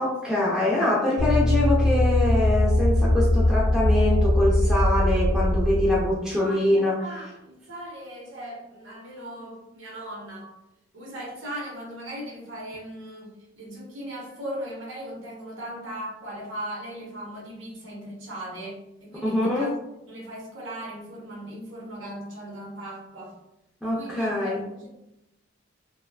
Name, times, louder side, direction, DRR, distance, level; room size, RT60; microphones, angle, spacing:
voice 1, 0.0-7.0 19.2-19.7 23.8-24.6, left 1 dB, 5° right, -7 dB, 0.4 m, -24 dB
sound 1, 1.2-6.2, left 1 dB, 60° left, 0.5 m, -21 dB
voice 2, 6.3-10.5 10.9-19.7 20.1-23.4 23.8-24.9, equal, 75° right, -2 dB, 0.8 m, -38 dB
2.5 x 2.2 x 2.2 m, 0.90 s
head